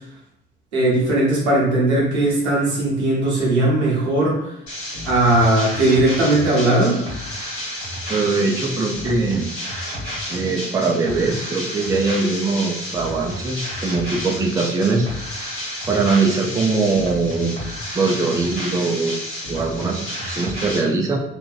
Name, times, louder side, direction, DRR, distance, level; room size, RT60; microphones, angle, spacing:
voice 1, 0.7-4.5 5.0-7.0, right 2 dB, 85° right, -5 dB, 0.8 m, -18 dB
sound 1, 4.7-20.8, left 1 dB, 75° left, 1.2 m, -31 dB
voice 2, 8.1-9.5 10.3-15.1 15.9-17.6 17.9-21.2, right 3 dB, 10° right, 1 dB, 0.3 m, -21 dB
2.7 x 2.1 x 2.3 m, 0.80 s
figure-of-eight pair, 50°, 33 cm